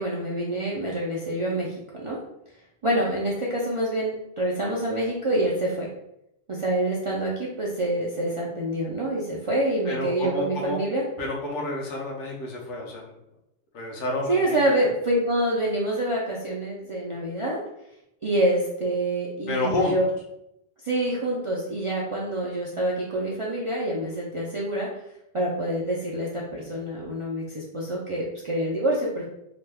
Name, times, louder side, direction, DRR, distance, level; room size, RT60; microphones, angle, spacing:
voice 1, 0.0-1.7 2.0-2.2 2.8-5.9 6.5-11.0 14.3-17.6 18.2-20.0 20.8-24.9 25.3-29.3, right 1 dB, 50° right, -5 dB, 0.3 m, -26 dB
voice 2, 9.8-10.8 11.2-13.1 13.7-14.6 19.5-19.9, left 2 dB, 85° left, -1 dB, 1.1 m, -29 dB
2.8 x 2.2 x 3.3 m, 0.82 s
omnidirectional pair, 1.2 m